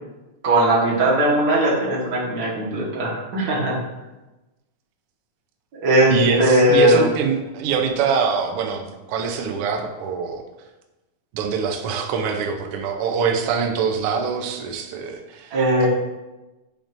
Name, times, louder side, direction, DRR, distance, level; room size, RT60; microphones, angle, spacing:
voice 1, 0.4-3.8 5.7-7.1 15.5-15.9, right 1 dB, 40° right, -6 dB, 1.6 m, -19 dB
voice 2, 6.1-10.4 11.3-15.5, right 6 dB, 85° right, 3 dB, 1.2 m, -24 dB
7.5 x 5.1 x 2.6 m, 1.1 s
omnidirectional pair, 3.4 m